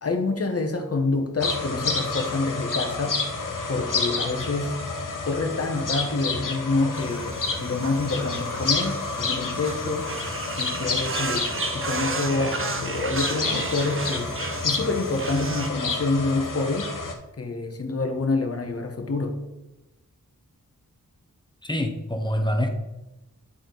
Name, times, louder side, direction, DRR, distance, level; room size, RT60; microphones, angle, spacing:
voice 1, 0.0-3.2 3.7-4.8 5.2-10.1 10.6-11.5 11.7-14.3 14.6-16.9 17.4-19.3, left 3 dB, 45° left, 4 dB, 1.1 m, -27 dB
sound 1, 1.4-17.1, left 3 dB, 70° left, 1.0 m, -29 dB
sound 2, 6.9-15.7, right 4 dB, 40° right, 0.7 m, -33 dB
voice 2, 21.6-22.7, equal, 15° left, 4 dB, 1.0 m, -25 dB
9.9 x 4.4 x 3.9 m, 0.98 s
wide cardioid pair, 85°, 33 cm